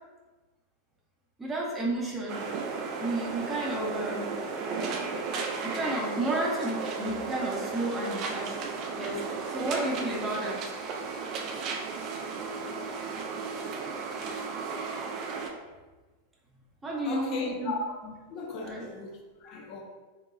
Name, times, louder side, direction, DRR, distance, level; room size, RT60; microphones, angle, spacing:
voice 1, 1.4-2.5 3.0-4.4 5.6-8.6 8.9-9.2 9.5-10.6 16.8-17.7 18.0-18.1 18.6-18.9, right 1 dB, 15° right, 0.7 m, -32 dB
sound 1, 2.3-15.5, right 4 dB, 40° right, 0.4 m, -34 dB
voice 2, 17.0-18.0 18.3-19.8, left 3 dB, 40° left, 0.5 m, -36 dB
3.8 x 2.6 x 2.5 m
figure-of-eight pair, 90°, 0 cm